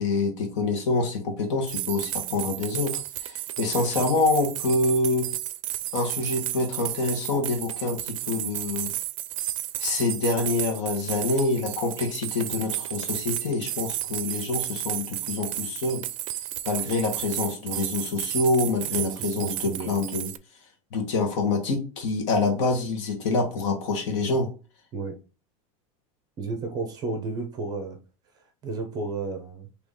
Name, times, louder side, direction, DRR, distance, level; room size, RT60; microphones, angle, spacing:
voice 1, 0.0-5.3 5.9-8.9 9.8-16.1 16.6-20.3 20.9-24.5, left 3 dB, 60° left, 1.4 m, -26 dB
sound 1, 1.7-20.4, right 14 dB, 65° right, 0.4 m, -33 dB
voice 2, 19.0-19.9 24.9-25.1 26.4-28.0 28.6-29.7, right 3 dB, 20° right, 0.7 m, -32 dB
4.0 x 2.9 x 3.6 m
supercardioid pair, 175°, 17 cm